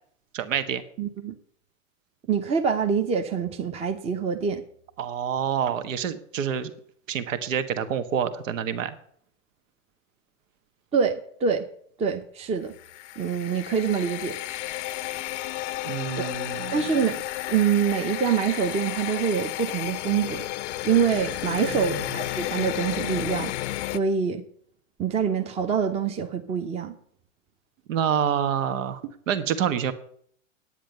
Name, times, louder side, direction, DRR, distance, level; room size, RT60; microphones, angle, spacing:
voice 1, 0.3-0.8 5.0-6.7 7.1-8.9 15.8-16.8 21.8-22.0 27.9-29.9, right 8 dB, 70° right, 10 dB, 1.4 m, -27 dB
voice 2, 1.0-1.3 2.3-4.6 10.9-11.7 12.0-12.7 13.2-14.4 16.1-16.3 16.7-17.2 17.5-20.5 20.8-23.5 23.9-24.4 25.0-26.9, right 6 dB, 15° right, 5 dB, 0.8 m, -25 dB
sound 1, 12.7-24.0, left 15 dB, 65° left, 0.6 m, -32 dB
10.0 x 9.3 x 6.7 m, 0.63 s
hypercardioid pair, 135°, 39 cm